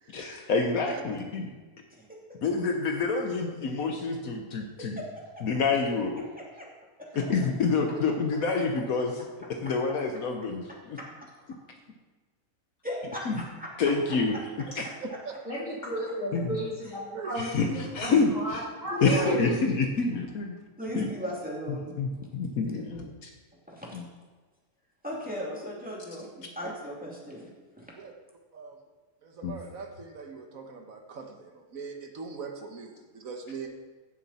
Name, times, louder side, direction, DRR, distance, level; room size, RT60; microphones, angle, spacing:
voice 1, 0.1-1.5 2.4-5.0 5.4-6.3 7.1-9.3 9.6-10.6 13.3-13.4 13.8-14.3 14.8-14.9 16.3-16.6 17.3-18.6 19.0-20.5 20.9-21.1 22.0-23.3 23.9-24.0 29.4-29.5, left 4 dB, 70° left, 3 dB, 1.3 m, -27 dB
voice 2, 4.8-5.4 6.4-6.7 7.0-7.1 12.8-13.7 14.0-14.4 18.9-19.1 20.8-22.0 23.7-24.0 25.0-27.5 27.8-27.9, equal, 5° right, -4 dB, 2.4 m, -37 dB
voice 3, 15.4-19.3, equal, 55° left, -6 dB, 4.1 m, -34 dB
voice 4, 19.0-19.7 28.0-28.1 28.5-28.8 29.2-33.7, right 5 dB, 65° right, 4 dB, 1.5 m, -38 dB
15.5 x 7.0 x 4.2 m, 1.3 s
omnidirectional pair, 1.6 m